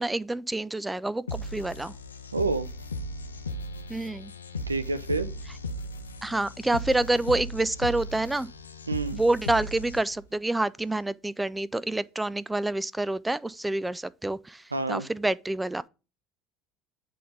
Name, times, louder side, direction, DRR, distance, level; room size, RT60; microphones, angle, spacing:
voice 1, 0.0-1.9 3.9-4.3 6.2-8.5 9.1-15.9, right 2 dB, 10° right, 0.3 m, -28 dB
sound 1, 1.3-10.3, left 1 dB, 85° left, 0.5 m, -37 dB
voice 2, 2.3-2.7 4.7-5.3 8.9-9.2 14.7-15.1, right 3 dB, 90° right, 0.5 m, -28 dB
8.4 x 3.9 x 4.9 m
figure-of-eight pair, 65°, 0 cm